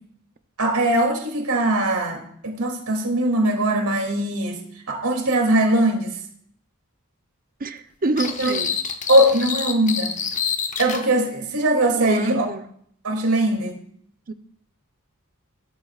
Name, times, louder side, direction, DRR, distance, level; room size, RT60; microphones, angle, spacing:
voice 1, 0.6-4.6 4.9-6.1 8.4-8.6 9.1-10.1 10.8-12.5 13.0-13.8, right 1 dB, 85° right, 2.8 m, -20 dB
voice 2, 7.6-8.8 12.0-12.7 14.3-14.4, right 2 dB, 40° right, 0.7 m, -26 dB
sound 1, 8.2-11.1, left 6 dB, 35° left, 1.0 m, -27 dB
16.5 x 13.0 x 2.5 m
head